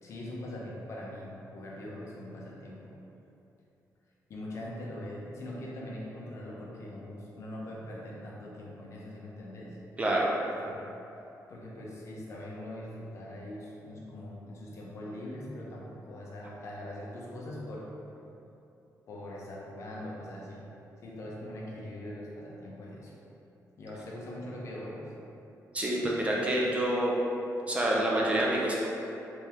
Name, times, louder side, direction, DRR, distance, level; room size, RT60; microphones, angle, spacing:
voice 1, 0.0-2.9 4.3-9.8 10.6-10.9 11.5-17.9 19.1-20.7 21.0-23.2 23.8-25.1, left 1 dB, 50° left, -4 dB, 0.6 m, -42 dB
voice 2, 10.0-10.3 25.7-27.1 27.6-28.8, right 1 dB, 20° right, -4 dB, 0.4 m, -27 dB
3.4 x 3.1 x 2.8 m, 2.9 s
wide cardioid pair, 175°, 6 cm